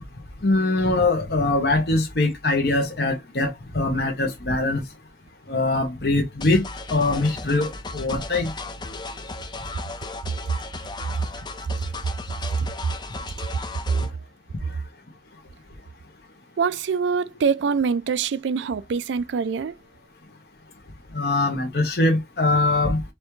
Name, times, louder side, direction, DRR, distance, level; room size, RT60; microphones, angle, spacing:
voice 1, 0.4-4.8 5.5-6.6 6.9-8.5 21.1-23.0, left 2 dB, 60° left, 1.0 m, -22 dB
sound 1, 6.4-14.1, left 3 dB, 25° left, 0.5 m, -36 dB
voice 2, 16.6-19.7, right 5 dB, 85° right, 0.4 m, -24 dB
4.2 x 3.4 x 3.1 m
head